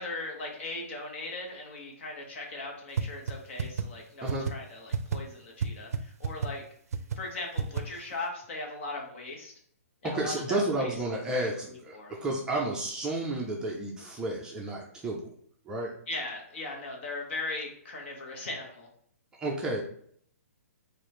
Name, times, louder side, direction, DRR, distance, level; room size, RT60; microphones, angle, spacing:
voice 1, 0.0-6.6 7.1-9.5 10.0-10.9 11.3-12.2 16.1-18.9, left 2 dB, 50° left, 0 dB, 1.2 m, -39 dB
sound 1, 3.0-3.1 3.3-3.4 3.6-3.8 4.3-4.5 4.9-5.2 5.6-5.7 5.9-6.0 6.2-6.5 6.9-7.2 7.6-7.8, right 7 dB, 75° right, 0.4 m, -28 dB
voice 2, 10.0-15.3 15.7-15.9 19.4-19.8, right 2 dB, 10° right, -2 dB, 0.5 m, -31 dB
4.0 x 2.6 x 3.1 m, 0.63 s
hypercardioid pair, 155°, 8 cm